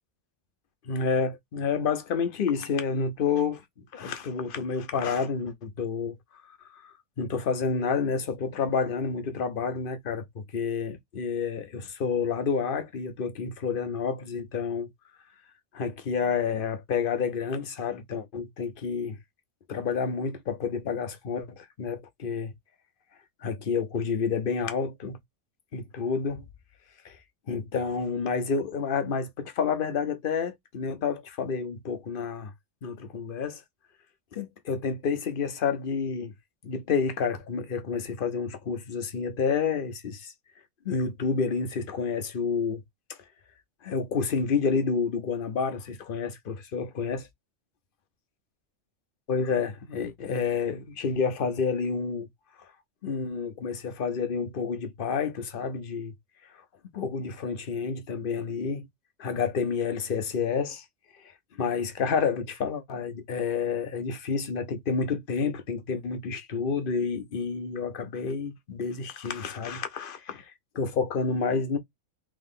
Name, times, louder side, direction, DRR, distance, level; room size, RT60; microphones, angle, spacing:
voice 1, 0.8-3.6 3.9-6.2 6.4-14.9 15.7-19.2 19.7-22.5 23.4-25.2 25.7-26.4 27.0-27.2 27.5-32.5 32.8-33.6 34.3-36.3 36.6-40.3 40.8-42.8 43.1-43.2 43.8-47.3 49.3-52.3 52.6-52.7 53.0-56.1 56.9-58.9 59.2-60.8 61.2-71.8, left 5 dB, 50° left, 0.9 m, -29 dB
3.7 x 3.0 x 3.6 m
omnidirectional pair, 1.3 m